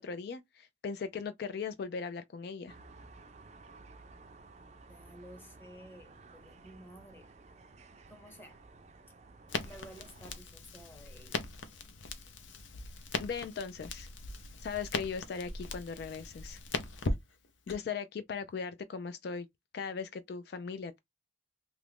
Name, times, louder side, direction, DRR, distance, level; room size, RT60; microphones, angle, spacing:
voice 1, 0.0-2.8 13.2-14.1 14.6-16.6 17.7-19.5 19.7-21.0, left 5 dB, 55° left, 0.3 m, -38 dB
sound 1, 2.7-10.4, right 3 dB, 35° right, 0.4 m, -55 dB
voice 2, 4.9-7.3 8.1-8.6 9.6-11.5, equal, 10° left, 0.7 m, -53 dB
Crackle, 9.5-17.8, left 3 dB, 85° left, 0.6 m, -39 dB
2.9 x 2.4 x 3.3 m
head